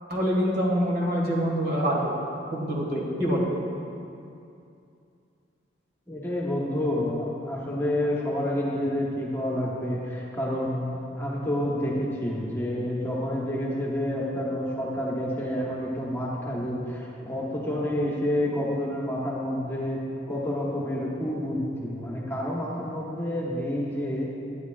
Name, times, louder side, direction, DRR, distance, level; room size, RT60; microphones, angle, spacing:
voice 1, 0.1-2.1 2.5-3.5, equal, 60° right, -3 dB, 1.7 m, -25 dB
voice 2, 6.1-24.3, left 1 dB, 15° left, -5 dB, 1.1 m, -29 dB
11.0 x 9.4 x 2.4 m, 2.6 s
head